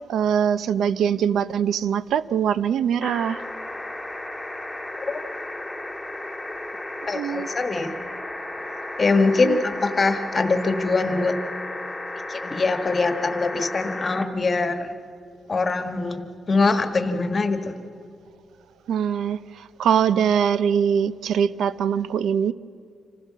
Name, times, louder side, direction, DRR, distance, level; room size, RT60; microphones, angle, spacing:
voice 1, 0.1-3.4 7.1-7.5 9.4-9.6 18.9-22.5, right 8 dB, 85° right, 16 dB, 0.6 m, -22 dB
sound 1, 3.0-14.3 15.7-15.8, left 1 dB, ahead, 1.7 m, -34 dB
voice 2, 7.1-7.9 9.0-11.4 12.3-14.9 15.5-17.8, left 3 dB, 25° left, 8 dB, 1.3 m, -23 dB
26.5 x 15.5 x 7.5 m, 2.5 s
wide cardioid pair, 170°, 0 cm